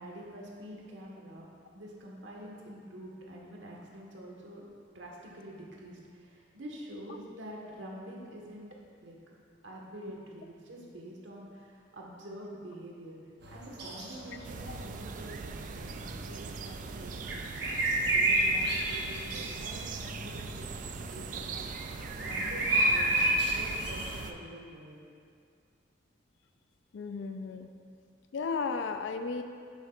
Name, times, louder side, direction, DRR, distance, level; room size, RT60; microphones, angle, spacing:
voice 1, 0.0-1.5 1.7-4.7 4.9-8.7 9.0-9.2 9.6-13.2 13.5-23.1 23.4-25.0, right 1 dB, 80° right, -2 dB, 1.3 m, -46 dB
sound 1, 13.4-24.3, right 1 dB, 60° right, 1.1 m, -32 dB
sound 2, 14.4-24.3, right 5 dB, 40° right, 0.3 m, -41 dB
voice 2, 26.9-27.7 28.3-29.4, left 4 dB, 70° left, 7 dB, 0.4 m, -34 dB
9.8 x 7.3 x 2.4 m, 2.3 s
head